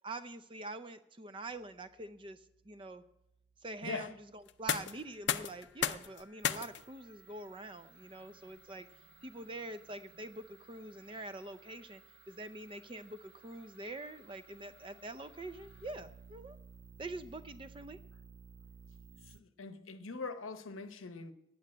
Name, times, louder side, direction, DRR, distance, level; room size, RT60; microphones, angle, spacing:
voice 1, 0.0-2.4 2.7-3.0 3.6-8.9 9.2-12.0 12.3-16.6 17.0-18.0, right 2 dB, 25° right, 0.5 m, -45 dB
sound 1, 1.5-19.4, right 6 dB, 85° right, 0.5 m, -60 dB
voice 2, 3.8-4.1 19.2-21.3, left 4 dB, 80° left, 0.9 m, -42 dB
sound 2, 4.4-16.2, left 8 dB, 60° left, 0.5 m, -42 dB
9.3 x 8.7 x 8.6 m
head